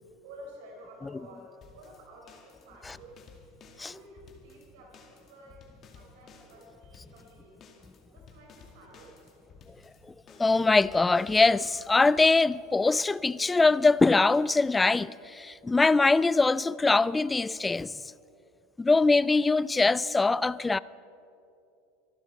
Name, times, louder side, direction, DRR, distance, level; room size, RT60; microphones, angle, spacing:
voice 1, 0.2-3.2 3.8-5.7 5.9-7.6 8.1-9.3, right 1 dB, 65° right, 4.6 m, -51 dB
sound 1, 1.6-12.3, left 5 dB, 40° left, 2.2 m, -55 dB
voice 2, 10.4-18.0 18.8-20.8, left 3 dB, 15° left, 0.4 m, -23 dB
24.5 x 12.0 x 4.6 m
hypercardioid pair, 85°, 0 cm